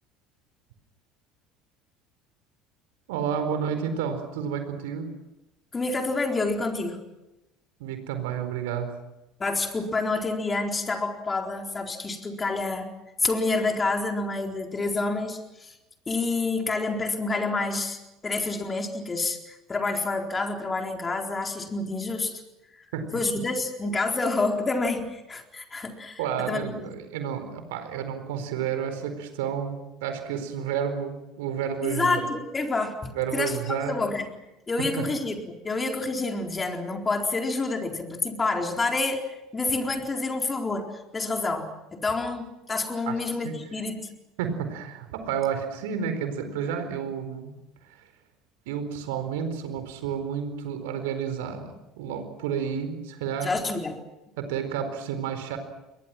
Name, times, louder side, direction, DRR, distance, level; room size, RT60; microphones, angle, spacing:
voice 1, 3.1-5.1 7.8-8.9 22.9-23.1 26.2-32.2 33.1-34.0 34.8-35.1 43.1-43.2 43.4-43.6 44.4-47.5 48.7-53.5 54.4-55.6, right 7 dB, 70° right, 8 dB, 4.4 m, -30 dB
voice 2, 5.7-7.0 9.4-12.9 13.2-15.7 16.1-22.4 23.1-26.8 31.8-34.3 34.7-44.1 53.4-54.0, left 3 dB, 25° left, 3 dB, 4.1 m, -28 dB
30.0 x 23.0 x 6.1 m, 0.97 s
figure-of-eight pair, 65°, 0 cm